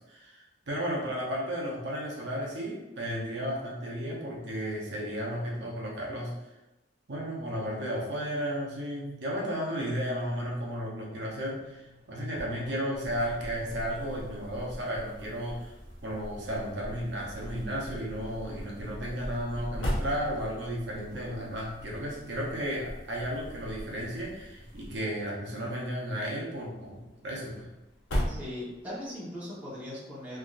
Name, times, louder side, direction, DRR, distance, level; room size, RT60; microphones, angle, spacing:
voice 1, 0.0-6.3 7.1-15.7 16.0-27.7, equal, 70° right, -3 dB, 0.7 m, -34 dB
Exterior Prius back hatch open close, 11.1-29.1, equal, 90° left, 0.7 m, -41 dB
sound 1, 12.9-25.0, equal, 45° left, 1.2 m, -44 dB
voice 2, 28.2-30.4, left 1 dB, 10° right, -10 dB, 0.9 m, -39 dB
3.4 x 2.5 x 2.4 m, 0.99 s
head